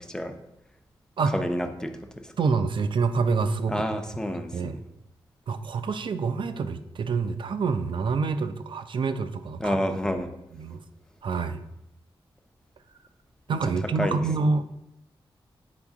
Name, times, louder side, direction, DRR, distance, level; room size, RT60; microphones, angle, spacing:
voice 1, 1.3-2.3 3.7-4.8 9.6-10.3 14.0-14.3, equal, 5° left, 6 dB, 0.6 m, -29 dB
voice 2, 2.4-3.8 4.5-4.8 5.5-9.8 10.5-10.8 11.2-11.6 13.5-14.7, right 4 dB, 60° right, 10 dB, 0.5 m, -27 dB
8.5 x 4.8 x 3.6 m, 0.85 s
wide cardioid pair, 125°, 9 cm